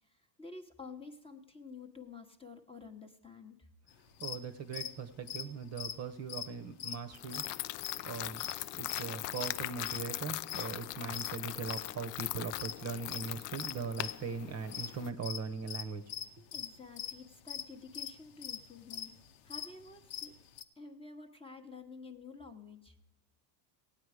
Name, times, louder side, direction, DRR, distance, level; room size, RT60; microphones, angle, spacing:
voice 1, 0.0-3.7 16.5-19.1 19.4-20.3 20.8-23.0, left 4 dB, 10° left, 4 dB, 0.8 m, -50 dB
sound 1, 4.1-4.4 4.7-4.9 5.2-7.0 7.3-7.5 7.8-8.1 8.4-9.0 9.3-9.5 9.8-10.7 11.1-11.9 12.2-14.3 14.6-14.9 15.2-20.6, left 9 dB, 55° left, 0.9 m, -41 dB
voice 2, 4.2-7.4 8.0-8.5 8.8-16.4, right 5 dB, 30° right, 10 dB, 0.9 m, -40 dB
sound 2, 7.1-15.1, left 17 dB, 80° left, 0.6 m, -40 dB
17.0 x 8.8 x 4.9 m, 0.83 s
supercardioid pair, 125°, 48 cm